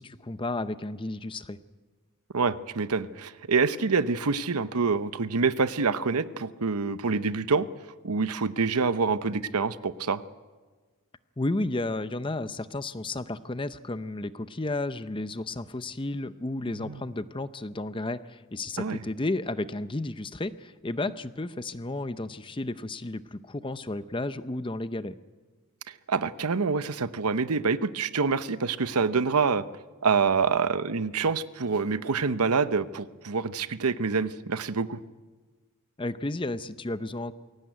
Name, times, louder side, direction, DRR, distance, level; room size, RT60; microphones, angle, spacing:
voice 1, 0.0-1.6 11.4-25.1 36.0-37.3, left 2 dB, 20° left, 13 dB, 0.6 m, -32 dB
voice 2, 2.3-7.6 8.0-10.2 16.7-17.0 18.8-19.0 25.9-29.6 30.0-35.0, right 4 dB, 90° right, 14 dB, 0.8 m, -26 dB
23.0 x 17.0 x 9.3 m, 1.4 s
head